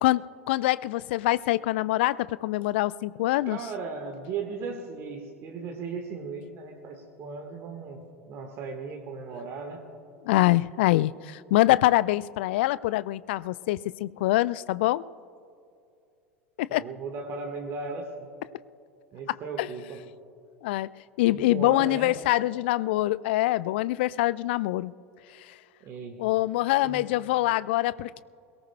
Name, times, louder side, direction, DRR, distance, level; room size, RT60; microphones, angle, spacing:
voice 1, 0.0-3.6 10.2-15.0 16.6-16.8 19.6-19.7 20.6-20.9 21.2-24.9 26.2-28.2, left 17 dB, 55° left, 19 dB, 0.3 m, -24 dB
voice 2, 3.5-9.8 16.7-18.3 19.1-20.0 21.3-22.1 25.8-26.2 26.8-27.1, right 4 dB, 40° right, 3 dB, 1.4 m, -37 dB
22.0 x 18.0 x 2.2 m, 2.5 s
figure-of-eight pair, 80°, 7 cm